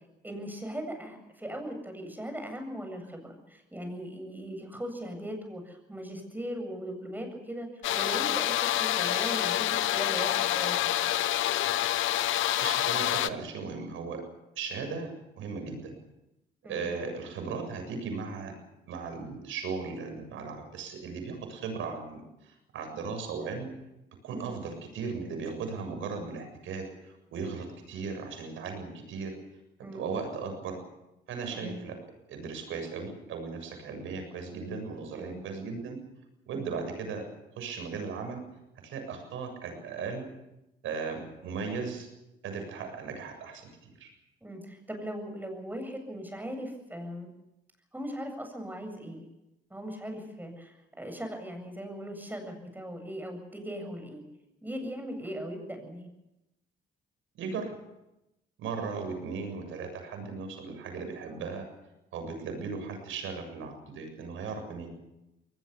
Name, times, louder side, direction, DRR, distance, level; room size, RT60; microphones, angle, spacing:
voice 1, 0.2-7.7 7.9-11.1 16.6-16.9 24.3-24.6 29.8-30.1 31.5-31.8 35.1-35.4 36.5-36.7 44.4-47.3 47.9-49.2 49.7-54.2 54.6-56.1, equal, 10° right, 5 dB, 7.9 m, -39 dB
sound 1, 7.8-13.3, left 13 dB, 80° left, 0.9 m, -27 dB
voice 2, 12.3-14.2 14.6-15.1 15.4-15.9 16.7-18.6 18.9-22.2 22.7-23.7 24.2-29.3 29.9-30.8 31.3-31.9 32.3-36.0 36.5-37.2 37.6-38.4 38.8-40.2 40.8-42.1 42.4-43.7 44.0-44.1 57.4-57.7 58.6-61.7 62.1-64.9, right 5 dB, 85° right, 5 dB, 7.3 m, -37 dB
22.0 x 19.0 x 8.3 m, 0.93 s
cardioid pair, 90°, 20 cm